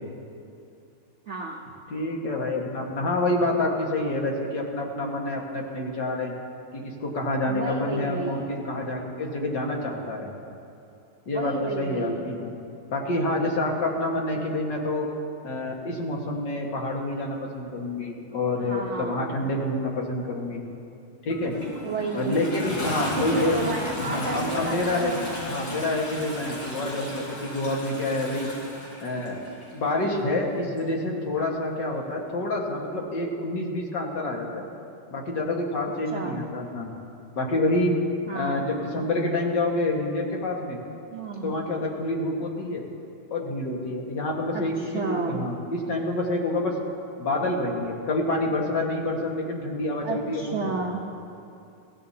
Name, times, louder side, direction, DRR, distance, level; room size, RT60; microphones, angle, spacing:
voice 1, 1.3-1.6 7.5-8.5 11.3-12.3 18.6-19.5 21.8-22.5 23.2-25.2 36.1-36.4 38.3-38.6 41.1-41.6 44.5-45.4 50.0-51.0, right 4 dB, 45° right, -1 dB, 0.9 m, -32 dB
voice 2, 1.9-6.3 6.7-10.3 11.3-12.5 12.9-15.1 15.4-20.6 21.2-21.6 22.1-23.6 24.0-28.5 29.0-34.6 35.1-36.9 37.4-37.9 38.3-40.8 41.4-42.8 43.3-46.7 47.2-50.7, left 2 dB, 55° left, -1 dB, 2.2 m, -27 dB
Toilet flush, 21.3-29.7 30.8-30.9, left 1 dB, 80° left, 4.4 m, -35 dB
23.0 x 16.0 x 2.8 m, 2.6 s
omnidirectional pair, 2.4 m